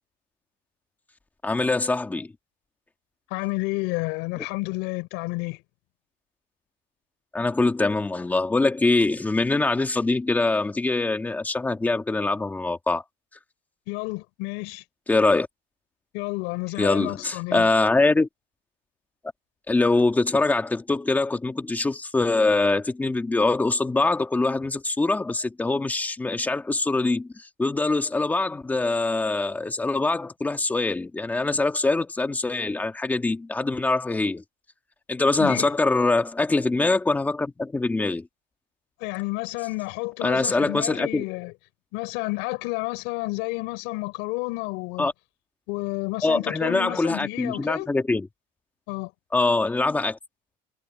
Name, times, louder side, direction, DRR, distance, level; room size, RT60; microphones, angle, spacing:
voice 1, 1.4-2.3 7.3-13.0 15.1-15.5 16.8-18.3 19.7-27.3 27.6-34.4 35.1-38.3 40.2-41.2 45.0-45.1 46.2-48.3 49.3-50.2, left 3 dB, 10° left, 1.7 m, -23 dB
voice 2, 3.3-5.6 13.9-14.8 16.1-17.7 35.4-35.7 39.0-41.5 41.9-45.1 45.7-47.9 48.9-49.1, left 25 dB, 75° left, 4.2 m, -30 dB
cardioid pair, 180°, 19 cm